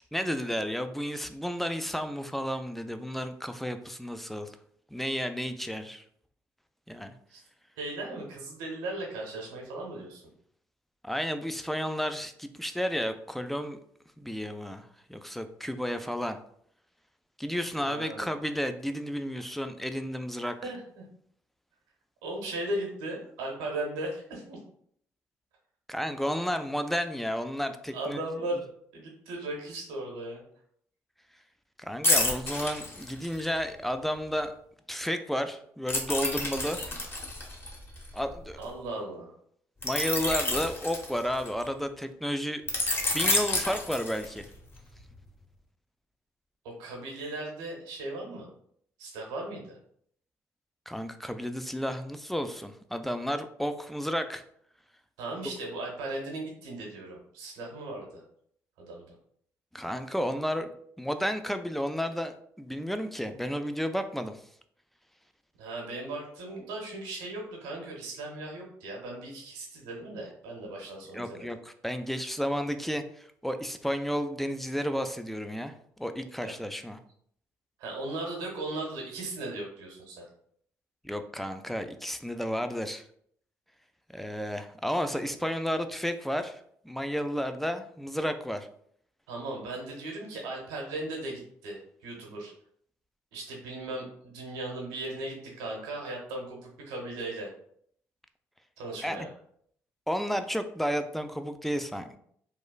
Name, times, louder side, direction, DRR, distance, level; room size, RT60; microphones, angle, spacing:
voice 1, 0.0-4.6 4.9-6.0 6.9-7.1 11.0-13.8 14.2-16.4 17.4-20.6 25.9-28.2 31.8-34.5 34.9-36.8 38.1-38.6 39.8-42.6 43.1-44.5 50.9-54.4 59.7-64.4 71.1-77.0 81.0-83.1 84.1-86.6 86.8-88.7 99.0-99.3 100.1-102.2, equal, 5° left, 8 dB, 0.3 m, -32 dB
voice 2, 7.8-10.2 17.8-18.2 20.6-21.1 22.2-24.6 27.9-28.6 28.9-30.4 38.6-39.3 46.8-48.5 49.0-49.8 55.2-58.2 58.8-59.1 65.6-71.5 76.4-76.5 77.8-80.3 89.3-92.5 93.3-97.5 98.8-99.3, right 2 dB, 80° right, -1 dB, 0.8 m, -37 dB
sound 1, 32.0-33.6 35.9-38.6 39.8-41.7 42.7-44.5 45.0-45.2, left 2 dB, 30° left, 0.9 m, -29 dB
3.1 x 2.3 x 2.2 m, 0.66 s
hypercardioid pair, 50°, 7 cm